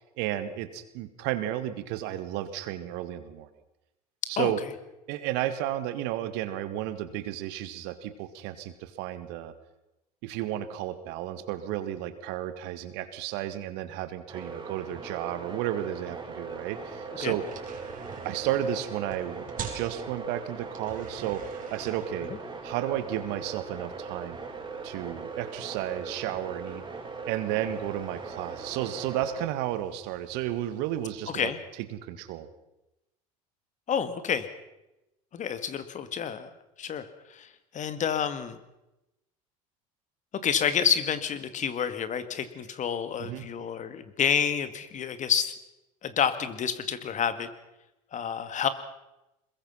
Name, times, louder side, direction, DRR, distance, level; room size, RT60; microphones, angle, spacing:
voice 1, 0.2-3.5 4.3-4.6 5.1-9.5 10.2-17.4 18.2-22.3 22.6-24.4 24.8-26.8 27.3-31.5 31.9-32.5 43.2-43.5, right 12 dB, 65° right, 11 dB, 1.8 m, -32 dB
sound 1, 14.3-29.5, right 4 dB, 25° right, 5.5 m, -40 dB
sound 2, 16.5-31.5, right 8 dB, 45° right, 4.3 m, -48 dB
voice 2, 33.9-34.5 35.3-36.5 36.8-38.6 40.4-45.5 46.0-47.5 48.1-48.7, left 8 dB, 40° left, 12 dB, 2.0 m, -29 dB
21.5 x 21.5 x 5.7 m, 0.95 s
hypercardioid pair, 80°, 19 cm